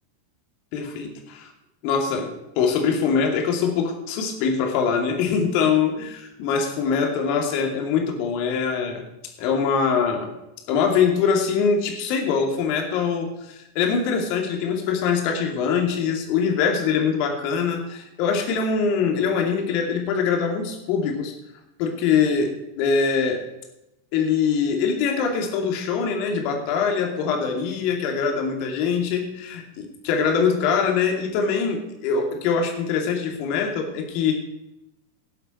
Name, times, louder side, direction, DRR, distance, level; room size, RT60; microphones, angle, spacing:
voice 1, 0.7-1.5 1.8-9.0 9.4-10.3 10.7-21.3 21.8-23.4 24.1-34.4, left 6 dB, 45° left, 3 dB, 2.4 m, -23 dB
18.5 x 7.9 x 4.4 m, 0.90 s
figure-of-eight pair, 90°, 0 cm